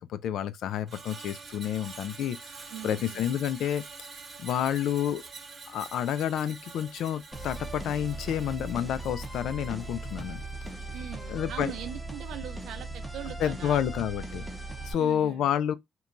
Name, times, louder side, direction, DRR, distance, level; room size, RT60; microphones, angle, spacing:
voice 1, 0.0-2.4 2.8-3.8 4.4-5.2 5.7-10.4 11.3-11.7 13.4-14.4 14.8-15.7, left 10 dB, 80° left, 0.3 m, -29 dB
Screech, 0.9-11.2 11.5-11.8, right 4 dB, 45° right, 0.8 m, -47 dB
voice 2, 2.7-3.4 10.9-13.8 15.0-15.5, right 10 dB, 85° right, 0.5 m, -41 dB
sound 1, 7.3-14.9, right 2 dB, ahead, 0.8 m, -38 dB
2.9 x 2.2 x 2.5 m
cardioid pair, 90°, 0 cm